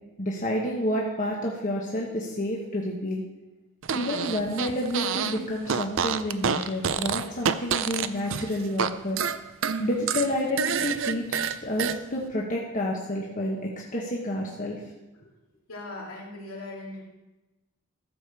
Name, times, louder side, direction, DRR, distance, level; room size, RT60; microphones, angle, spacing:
voice 1, 0.2-3.2 3.9-9.2 9.8-14.8, left 1 dB, 35° left, -3 dB, 1.3 m, -29 dB
Fart, 3.8-5.4 5.7-8.9 9.2-12.0, right 7 dB, 60° right, 0.5 m, -28 dB
voice 2, 15.7-17.1, left 2 dB, 70° left, -3 dB, 3.2 m, -39 dB
14.0 x 5.1 x 6.9 m, 1.1 s
head